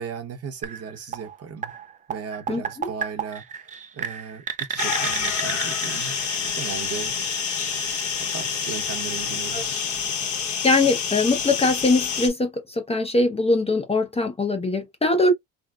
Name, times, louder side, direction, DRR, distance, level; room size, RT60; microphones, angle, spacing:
voice 1, 0.0-1.7 2.1-7.1 8.2-9.7, right 6 dB, 45° right, 0.9 m, -36 dB
sound 1, 0.6-10.4, right 7 dB, 25° right, 0.4 m, -35 dB
voice 2, 2.5-2.9 9.5-9.6 10.6-15.3, left 3 dB, 15° left, 0.7 m, -22 dB
sound 2, 4.8-12.3, left 6 dB, 55° left, 1.4 m, -27 dB
3.5 x 2.1 x 2.3 m
cardioid pair, 110°, 35 cm